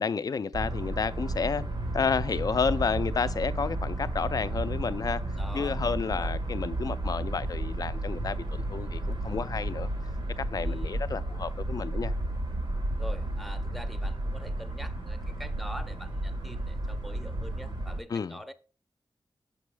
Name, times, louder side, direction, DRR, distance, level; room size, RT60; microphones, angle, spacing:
voice 1, 0.0-1.6 1.9-5.2 5.5-9.9 10.4-12.1 18.1-18.4, left 5 dB, 50° left, 0.4 m, -31 dB
sound 1, 0.5-18.0, right 1 dB, 80° right, 1.1 m, -32 dB
voice 2, 5.4-5.8 6.0-6.3 10.6-11.0 13.0-18.5, equal, ahead, 0.5 m, -44 dB
6.7 x 5.4 x 3.2 m
wide cardioid pair, 125°, 8 cm